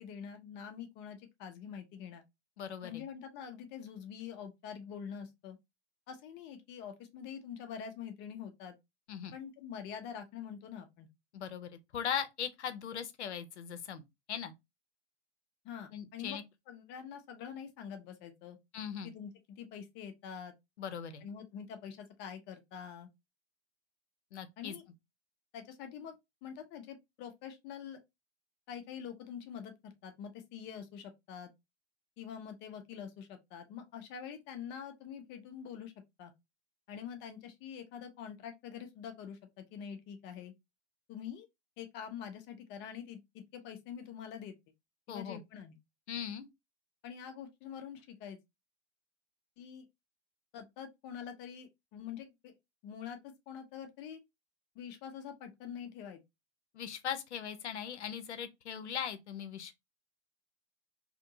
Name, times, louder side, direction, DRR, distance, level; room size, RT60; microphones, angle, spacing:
voice 1, 0.0-2.2 2.8-5.6 6.1-8.8 9.3-11.1 15.6-16.4 16.7-18.6 19.0-20.5 21.2-23.1 24.6-24.8 25.5-26.1 26.4-28.0 28.7-31.5 32.2-35.9 36.2-36.3 36.9-40.5 41.1-41.5 41.8-43.2 43.5-44.5 45.1-45.8 47.0-48.4 49.6-49.9 50.5-52.5 52.8-54.2 54.8-56.2, left 8 dB, 30° left, 0.5 m, -45 dB
voice 2, 2.6-3.0 9.1-9.3 11.3-14.0 14.3-14.5 15.9-16.4 18.7-19.1 20.8-21.2 24.3-24.7 45.1-45.4 46.1-46.4 56.7-59.7, left 8 dB, 75° left, 0.6 m, -39 dB
2.8 x 2.6 x 2.6 m
figure-of-eight pair, 90°, 35 cm